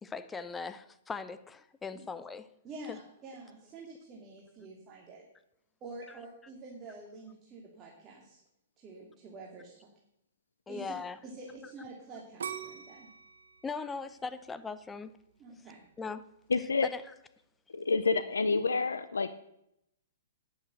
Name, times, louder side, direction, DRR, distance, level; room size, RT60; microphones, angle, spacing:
voice 1, 0.0-2.5 2.9-3.0 6.1-6.2 10.7-11.2 13.6-15.1 16.0-16.3 16.8-17.0, left 4 dB, 15° left, 12 dB, 0.7 m, -39 dB
voice 2, 2.6-5.2 5.8-8.4 8.8-9.7 10.7-11.0 11.2-13.1 15.4-15.8, right 2 dB, 25° right, -2 dB, 2.4 m, -47 dB
sound 1, 12.4-15.3 15.8-16.3, right 7 dB, 70° right, 1.0 m, -43 dB
voice 3, 16.5-16.9 17.7-19.3, left 4 dB, 80° left, 12 dB, 0.6 m, -28 dB
10.5 x 7.8 x 6.5 m, 0.77 s
hypercardioid pair, 115°, 0 cm